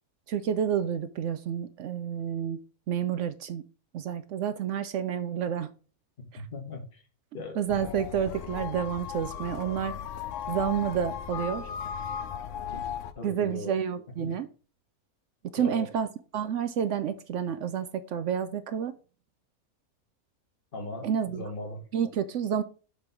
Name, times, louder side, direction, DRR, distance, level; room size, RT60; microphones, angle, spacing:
voice 1, 0.3-2.6 2.9-3.6 3.9-5.7 6.3-6.4 7.5-10.0 10.5-11.7 13.2-14.5 15.4-16.1 16.3-18.9 21.0-21.4 21.9-22.6, right 8 dB, 65° right, 0.8 m, -29 dB
voice 2, 6.5-7.0 7.3-7.9 12.7-12.9 13.2-13.8 14.2-14.4 15.6-15.9 20.7-21.8, left 2 dB, 35° left, 1.7 m, -38 dB
sound 1, 7.7-13.1, left 8 dB, 65° left, 0.9 m, -36 dB
6.8 x 3.4 x 5.8 m
omnidirectional pair, 1.6 m